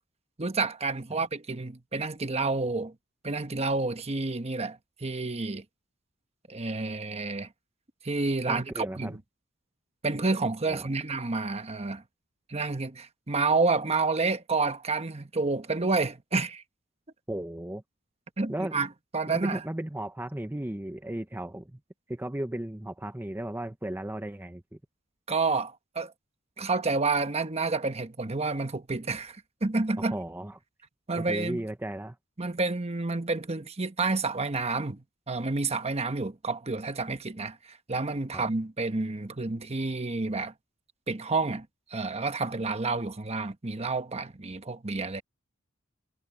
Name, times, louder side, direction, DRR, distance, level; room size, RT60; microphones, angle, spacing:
voice 1, 0.4-2.9 3.2-5.6 6.5-7.5 8.0-9.2 10.0-12.0 12.5-16.6 18.4-18.9 19.1-19.6 25.3-26.1 26.6-30.2 31.1-31.6 32.4-40.5 41.1-45.2, right 3 dB, 30° right, 1.2 m, -29 dB
voice 2, 8.5-9.1 10.7-10.9 17.3-17.8 18.5-18.7 19.3-21.8 22.1-24.6 30.0-30.6 31.1-32.2 38.3-38.4, right 1 dB, 10° right, 0.7 m, -35 dB
head